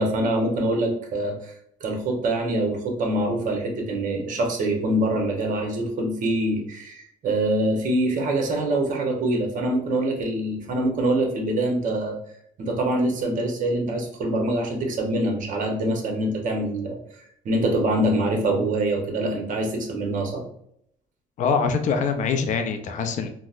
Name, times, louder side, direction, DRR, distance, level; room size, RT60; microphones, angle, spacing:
voice 1, 0.0-1.5 1.8-12.2 12.6-17.0 17.4-20.4, right 1 dB, 50° right, 2 dB, 0.9 m, -24 dB
voice 2, 21.4-23.3, left 5 dB, 50° left, 6 dB, 0.4 m, -24 dB
4.0 x 2.0 x 2.4 m, 0.70 s
cardioid pair, 110°, 17 cm